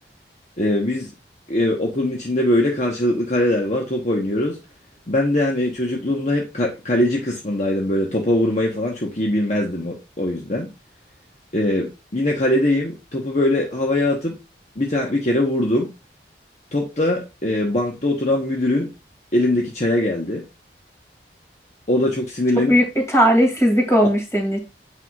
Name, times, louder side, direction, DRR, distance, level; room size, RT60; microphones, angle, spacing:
voice 1, 0.6-1.1 1.5-4.6 5.1-10.7 11.5-14.3 14.8-15.9 16.7-18.9 19.3-20.5 21.9-22.7, left 1 dB, 40° left, 1.1 m, -21 dB
voice 2, 22.7-24.6, equal, 15° left, 2.5 m, -17 dB
9.0 x 5.6 x 2.4 m
head